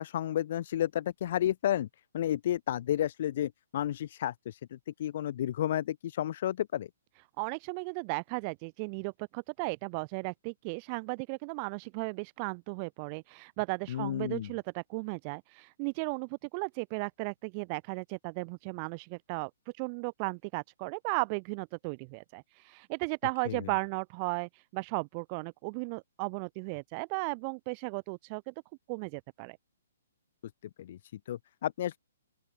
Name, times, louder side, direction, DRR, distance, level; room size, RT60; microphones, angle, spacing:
voice 1, 0.0-1.9 2.1-6.9 13.9-14.5 23.5-23.6 30.8-32.0, left 11 dB, 50° left, 1.3 m, -32 dB
voice 2, 7.4-28.5 28.9-29.6, right 35 dB, 30° right, 2.9 m, -35 dB
open air
hypercardioid pair, 155°, 0 cm